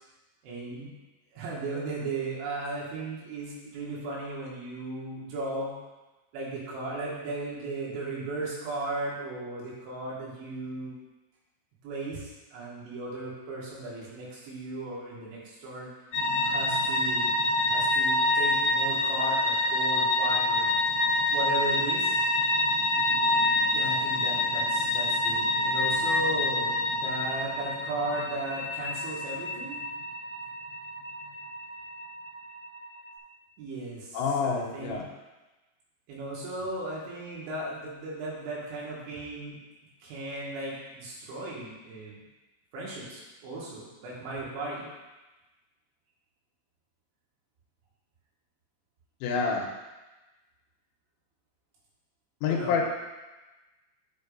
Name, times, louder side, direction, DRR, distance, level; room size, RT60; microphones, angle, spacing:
voice 1, 0.4-0.9 1.3-5.8 6.3-10.9 11.8-15.9 16.4-17.4 17.7-20.7 21.3-22.2 23.7-29.8 33.6-35.0 36.1-39.6 40.0-42.2 42.7-44.9 52.4-52.8, right 2 dB, 70° right, -6 dB, 3.9 m, -36 dB
sound 1, 16.1-33.1, left 2 dB, 55° left, 1.9 m, -27 dB
voice 2, 34.1-35.1 49.2-49.7 52.4-52.8, left 5 dB, 80° left, 1 dB, 3.2 m, -27 dB
10.0 x 7.0 x 2.6 m, 1.1 s
omnidirectional pair, 5.8 m